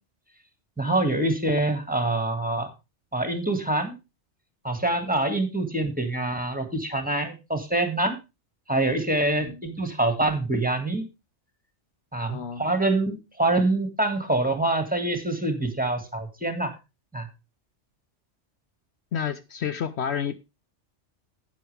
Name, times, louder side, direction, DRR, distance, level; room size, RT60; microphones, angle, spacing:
voice 1, 0.8-2.7 3.1-4.0 4.6-8.1 8.7-11.0 12.1-16.7 17.1-17.3, right 2 dB, 5° right, 1.7 m, -25 dB
voice 2, 12.3-12.7 19.1-20.4, left 8 dB, 65° left, 0.9 m, -30 dB
11.5 x 9.2 x 3.3 m
omnidirectional pair, 1.2 m